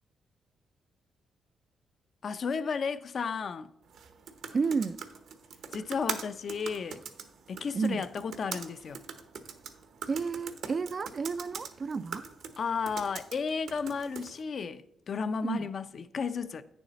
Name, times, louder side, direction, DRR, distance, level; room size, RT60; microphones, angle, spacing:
voice 1, 2.2-3.7 5.7-7.0 7.5-9.0 12.6-16.6, left 5 dB, 50° left, 0.5 m, -33 dB
sound 1, 3.9-14.4, right 6 dB, 75° right, 0.9 m, -43 dB
voice 2, 4.5-5.0 7.7-8.0 10.1-12.3 15.4-15.7, right 5 dB, 40° right, 0.3 m, -31 dB
8.9 x 7.0 x 4.0 m
cardioid pair, 105°, 0 cm